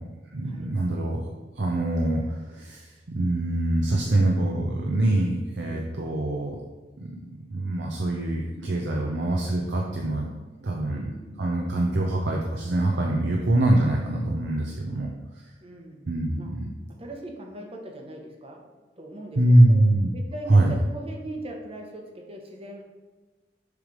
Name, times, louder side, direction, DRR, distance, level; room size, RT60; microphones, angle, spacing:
voice 1, 0.3-1.2 1.6-6.6 7.0-7.2 7.5-10.3 10.6-11.1 11.4-15.1 15.3-15.4 16.1-16.7 19.4-20.1 20.5-20.8, right 1 dB, 85° right, 0 dB, 0.7 m, -23 dB
voice 2, 5.7-6.0 9.0-9.2 10.8-11.4 15.6-16.5 16.9-18.7 19.0-19.8 20.1-22.8, right 1 dB, 35° right, 1 dB, 1.0 m, -40 dB
6.7 x 3.3 x 5.1 m, 1.2 s
head